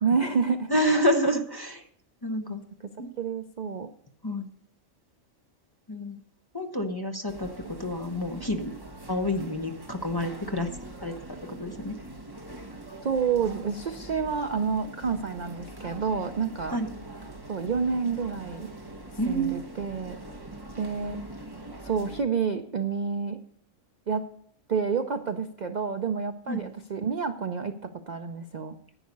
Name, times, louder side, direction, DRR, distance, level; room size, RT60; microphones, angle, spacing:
voice 1, 0.0-0.7 3.2-3.9 13.0-16.8 17.5-18.7 19.3-20.2 20.8-21.2 21.8-23.4 24.1-24.3 24.7-28.7, right 6 dB, 50° right, 7 dB, 0.5 m, -29 dB
voice 2, 0.7-1.9 2.2-2.6 3.0-3.1 4.2-4.5 5.9-6.2 6.5-8.7 9.1-10.7 11.0-11.2 11.5-12.0 16.7-16.9 19.2-19.6 26.5-26.7, equal, 20° left, 3 dB, 0.7 m, -28 dB
sound 1, 7.3-22.2, right 2 dB, 20° right, 1.1 m, -43 dB
11.0 x 9.5 x 5.3 m, 0.67 s
omnidirectional pair, 1.4 m